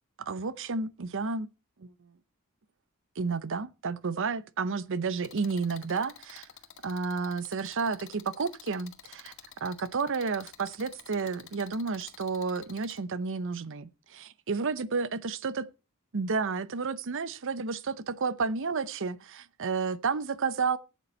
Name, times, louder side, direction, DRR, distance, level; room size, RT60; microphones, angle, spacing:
voice 1, 0.3-1.5 1.8-1.9 3.2-6.5 6.8-9.3 9.6-15.7 16.1-20.8, right 4 dB, 60° right, 0.7 m, -31 dB
sound 1, 5.2-13.0, left 9 dB, 60° left, 1.2 m, -51 dB
14.0 x 8.2 x 4.3 m
head